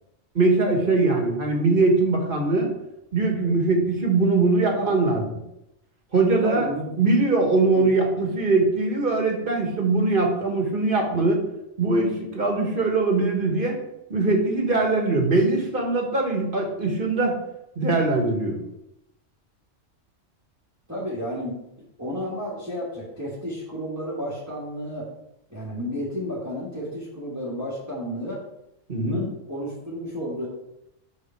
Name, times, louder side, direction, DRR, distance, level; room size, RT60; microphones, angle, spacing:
voice 1, 0.4-2.7 3.1-5.2 6.1-6.7 7.0-11.4 11.8-13.8 14.1-17.4 17.8-18.6 28.9-29.2, right 3 dB, 45° right, 1 dB, 1.7 m, -21 dB
voice 2, 6.4-6.9 7.7-7.9 20.9-21.6 22.0-25.1 25.5-28.4 28.9-30.5, equal, 15° right, -7 dB, 1.8 m, -32 dB
6.6 x 6.0 x 4.6 m, 0.84 s
omnidirectional pair, 1.3 m